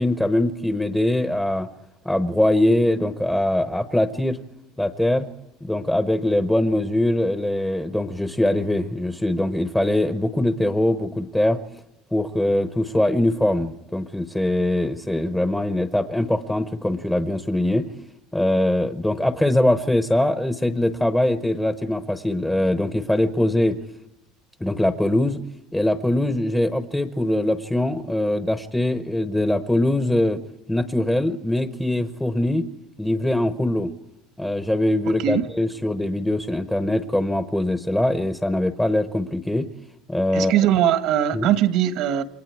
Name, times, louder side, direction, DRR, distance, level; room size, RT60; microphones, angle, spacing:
voice 1, 0.0-1.7 2.0-4.4 4.8-5.3 5.6-11.6 12.1-17.9 18.3-23.8 24.6-25.4 25.7-30.4 30.7-32.6 33.0-33.9 34.4-39.7 40.1-40.5 41.3-41.5, left 1 dB, 5° left, 8 dB, 0.9 m, -22 dB
voice 2, 35.0-35.5 40.3-42.2, right 10 dB, 60° right, 9 dB, 1.4 m, -20 dB
28.5 x 23.0 x 4.7 m, 0.87 s
cardioid pair, 160°, 0 cm